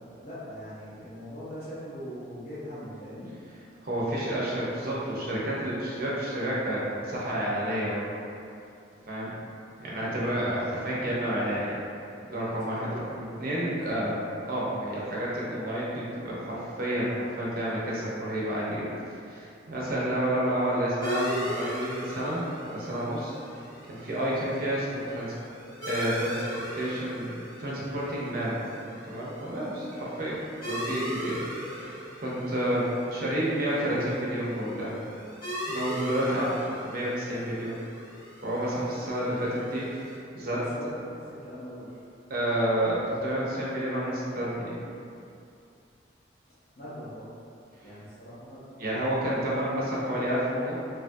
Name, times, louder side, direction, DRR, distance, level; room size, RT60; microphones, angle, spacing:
voice 1, 0.0-3.3 12.7-13.5 24.0-24.2 40.4-41.9 46.8-47.3 47.8-48.7, equal, 35° left, -12 dB, 0.5 m, -42 dB
voice 2, 3.5-8.1 9.1-9.3 9.8-11.8 12.3-14.2 14.5-18.8 19.2-25.3 25.9-26.4 26.7-28.6 29.1-34.9 35.7-37.8 38.4-40.6 42.3-44.8 47.8-47.9 48.8-50.7, right 1 dB, 45° right, -7 dB, 0.6 m, -30 dB
sound 1, 21.0-40.2, equal, 80° left, 1.0 m, -38 dB
3.4 x 2.2 x 2.6 m, 2.6 s
head